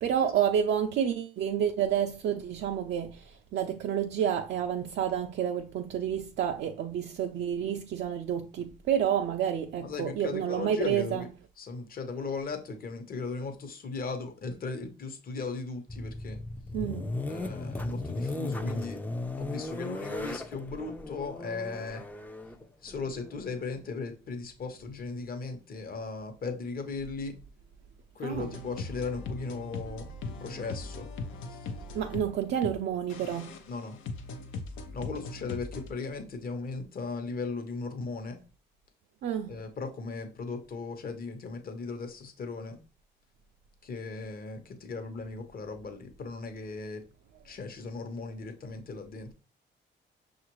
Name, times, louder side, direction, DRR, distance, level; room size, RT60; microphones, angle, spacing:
voice 1, 0.0-11.2 16.7-17.1 28.2-28.5 31.9-33.5 39.2-39.6, right 9 dB, 60° right, 0.4 m, -29 dB
voice 2, 9.8-11.3 11.6-16.4 17.3-19.0 19.4-22.0 22.8-27.4 28.1-31.1 31.5-31.6 33.7-34.0 34.9-38.4 39.5-42.8 43.8-47.0 47.4-49.3, left 4 dB, 45° left, 0.9 m, -37 dB
sound 1, 15.9-23.6, left 2 dB, 10° left, 0.4 m, -36 dB
sound 2, 28.3-32.8 33.1-35.9, left 3 dB, 85° left, 0.6 m, -39 dB
5.9 x 2.4 x 3.0 m
cardioid pair, 90°, 20 cm